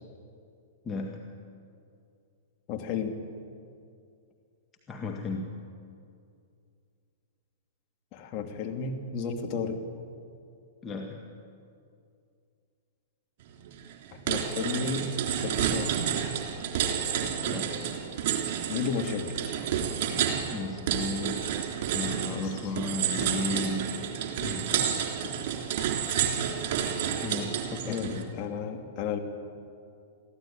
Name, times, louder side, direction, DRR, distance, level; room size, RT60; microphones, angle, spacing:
voice 1, 0.8-1.3 4.9-5.6 10.8-11.3 17.5-17.8 20.5-21.5 21.9-24.0 24.4-24.7 25.0-25.1 27.2-28.3, left 3 dB, 20° left, 1 dB, 1.7 m, -34 dB
voice 2, 2.7-3.2 8.1-9.8 14.3-15.1 15.4-16.0 18.7-19.6 22.3-22.5 24.6-25.4 27.8-29.2, left 6 dB, 35° left, 3 dB, 2.8 m, -33 dB
sound 1, 13.7-13.9 14.3-28.2, right 8 dB, 50° right, 3.5 m, -30 dB
23.0 x 15.0 x 9.1 m, 2.4 s
figure-of-eight pair, 105°, 0 cm